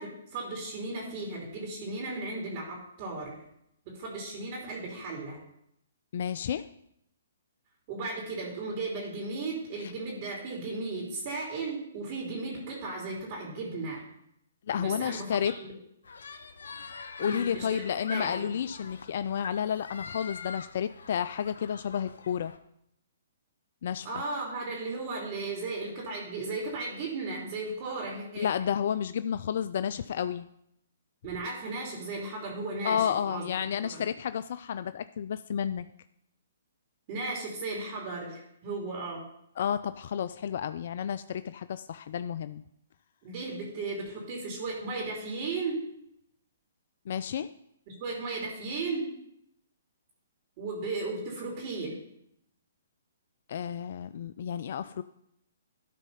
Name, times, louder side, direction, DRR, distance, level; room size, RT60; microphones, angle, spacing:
voice 1, 0.0-3.4 3.8-5.4 7.9-14.0 14.8-15.4 17.2-17.8 18.1-18.5 24.0-28.5 31.2-33.4 33.9-34.1 37.1-39.2 43.2-45.8 48.0-49.1 50.6-51.9, right 3 dB, 40° right, -3 dB, 2.9 m, -35 dB
voice 2, 6.1-6.6 14.7-15.6 17.2-22.5 23.8-24.1 28.4-30.5 32.8-35.9 39.6-42.6 47.1-47.5 53.5-55.0, left 8 dB, 55° left, 12 dB, 0.3 m, -31 dB
sound 1, 16.0-22.6, left 4 dB, 75° left, 0.8 m, -43 dB
12.5 x 4.2 x 5.6 m, 0.75 s
hypercardioid pair, 140°, 0 cm